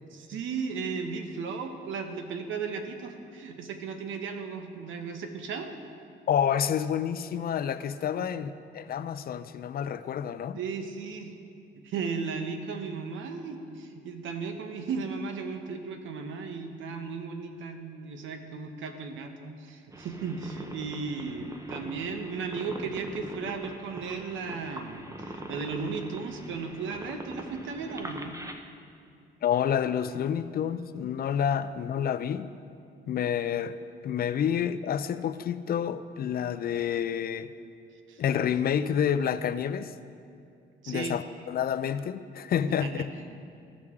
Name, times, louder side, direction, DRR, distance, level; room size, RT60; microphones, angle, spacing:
voice 1, 0.1-5.7 8.2-8.3 10.5-11.3 11.8-28.3 38.1-38.2 40.8-41.2 42.8-43.4, right 5 dB, 80° right, 6 dB, 0.9 m, -35 dB
voice 2, 6.3-10.6 29.4-32.5 33.1-33.8 34.0-37.5 38.2-39.9 40.9-43.0, left 8 dB, 50° left, 13 dB, 0.4 m, -29 dB
sound 1, 19.9-28.5, right 1 dB, 15° right, 0.7 m, -42 dB
14.5 x 6.2 x 3.7 m, 2.5 s
cardioid pair, 90°, 20 cm